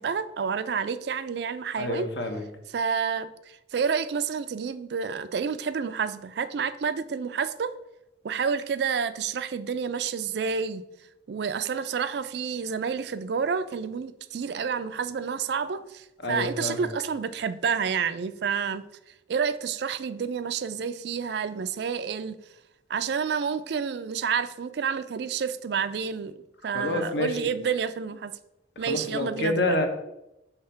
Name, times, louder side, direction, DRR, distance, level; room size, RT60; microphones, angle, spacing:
voice 1, 0.0-2.0 2.7-7.7 8.2-10.8 11.3-22.4 22.9-28.3 28.8-29.8, right 6 dB, 60° right, 13 dB, 0.3 m, -29 dB
voice 2, 1.8-2.4 16.2-16.9 26.7-27.3 28.8-29.9, left 2 dB, 65° left, 5 dB, 0.9 m, -28 dB
5.7 x 3.4 x 5.6 m, 0.87 s
head